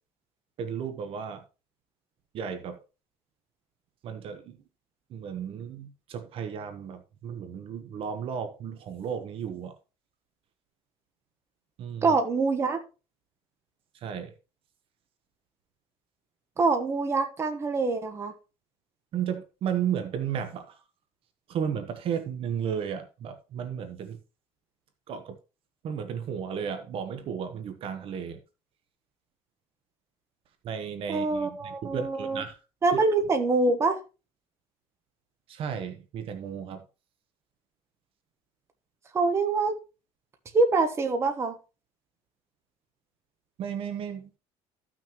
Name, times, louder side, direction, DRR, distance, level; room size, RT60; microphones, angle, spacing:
voice 1, 0.6-1.4 2.3-2.8 4.0-4.6 5.1-9.7 11.8-12.2 13.9-14.3 19.1-20.8 21.5-24.2 25.1-25.4 25.8-28.4 30.6-32.6 35.5-36.8 43.6-44.3, right 8 dB, 50° right, 1.0 m, -34 dB
voice 2, 12.0-12.8 16.6-18.3 31.1-32.4 32.8-34.0 39.1-39.7 40.5-41.6, right 3 dB, 20° right, 1.1 m, -25 dB
14.0 x 6.1 x 3.0 m
cardioid pair, 150°, 12 cm